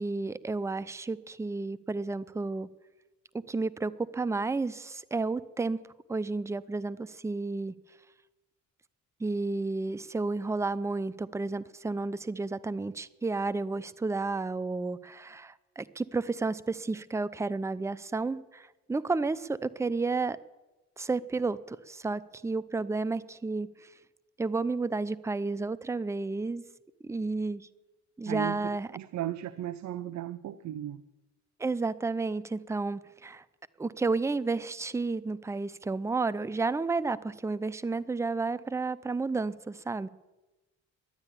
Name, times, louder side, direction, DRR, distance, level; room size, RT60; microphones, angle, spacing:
voice 1, 0.0-2.7 3.5-5.8 6.1-7.7 9.2-20.4 21.0-23.9 24.4-26.6 27.0-27.7 28.2-28.9 31.6-33.4 33.8-40.1, right 3 dB, 10° right, 16 dB, 0.5 m, -31 dB
voice 2, 28.3-31.0, right 12 dB, 65° right, 14 dB, 0.6 m, -36 dB
12.0 x 9.7 x 9.9 m, 1.1 s
cardioid pair, 90°, 30 cm